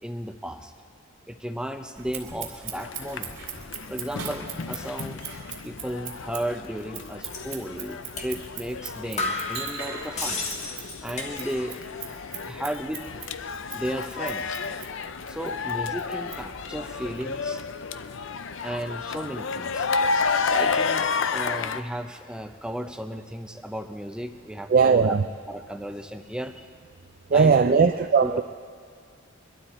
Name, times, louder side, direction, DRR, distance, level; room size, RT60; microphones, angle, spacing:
voice 1, 0.0-0.7 1.3-3.3 3.9-5.2 5.6-10.4 11.0-11.9 12.4-13.1 13.7-14.6 15.3-17.6 18.6-19.9 20.5-25.2 25.5-26.7 27.3-27.9 28.2-28.4, equal, 5° right, 6 dB, 0.6 m, -34 dB
Scissors, 2.0-17.2, right 7 dB, 60° right, 2.4 m, -41 dB
intermittent cheering, 2.8-21.8, left 5 dB, 60° left, 0.5 m, -31 dB
sound 1, 7.3-7.6 8.2-8.3 8.7-8.8 9.2-11.8 12.1-12.7, left 3 dB, 30° left, 1.5 m, -33 dB
voice 2, 24.7-25.2 27.3-28.4, right 5 dB, 45° right, 6 dB, 0.4 m, -18 dB
23.5 x 12.0 x 4.3 m, 2.1 s
head